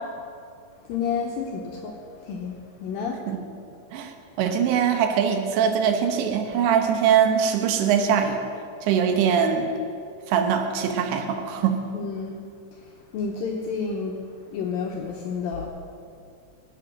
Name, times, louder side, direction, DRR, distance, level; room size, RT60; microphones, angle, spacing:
voice 1, 0.8-3.2 11.9-12.4 12.7-14.2 14.5-15.7, left 5 dB, 75° left, 0 dB, 2.1 m, -30 dB
voice 2, 3.9-8.4 8.8-9.7 10.3-11.8, right 7 dB, 80° right, 6 dB, 3.3 m, -22 dB
18.0 x 7.8 x 6.4 m, 2.4 s
omnidirectional pair, 5.2 m